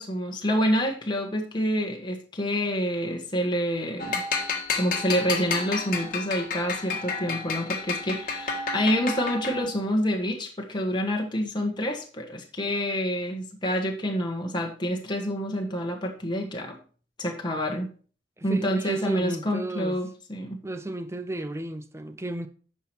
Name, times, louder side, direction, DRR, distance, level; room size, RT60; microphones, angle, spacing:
voice 1, 0.0-4.2 4.7-16.8 17.2-17.9 18.4-20.6, equal, 25° left, 1.4 m, -27 dB
sound 1, 4.0-9.8, left 4 dB, 50° left, 1.5 m, -31 dB
voice 2, 18.4-20.0 20.6-22.5, right 1 dB, 15° right, 0.6 m, -33 dB
9.4 x 5.9 x 4.5 m
head